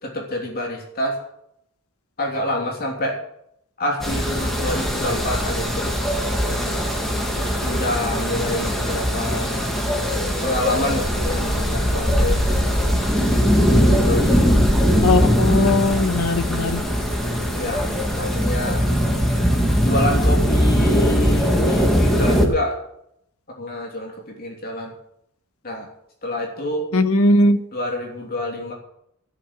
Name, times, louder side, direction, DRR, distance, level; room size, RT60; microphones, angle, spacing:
voice 1, 0.0-1.2 2.2-3.2 3.8-5.9 7.4-9.7 10.4-12.4 14.0-14.4 17.5-17.9 18.1-18.8 19.8-22.8 23.6-24.9 25.6-25.9 26.2-26.9 27.7-28.7, left 1 dB, 45° left, 0 dB, 3.1 m, -27 dB
sound 1, 4.0-22.5, equal, ahead, 2.1 m, -20 dB
voice 2, 15.0-16.8 26.9-27.6, left 2 dB, 80° left, 10 dB, 1.2 m, -18 dB
13.0 x 7.4 x 9.5 m, 0.75 s
head